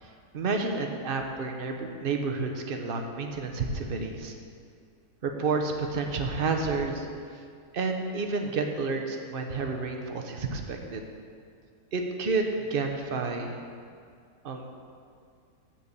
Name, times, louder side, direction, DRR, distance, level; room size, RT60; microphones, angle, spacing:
voice 1, 0.0-4.3 5.2-7.1 7.7-11.1 11.9-13.6 14.4-14.8, right 4 dB, 45° right, 3 dB, 0.9 m, -30 dB
7.6 x 6.8 x 7.1 m, 2.2 s
omnidirectional pair, 1.7 m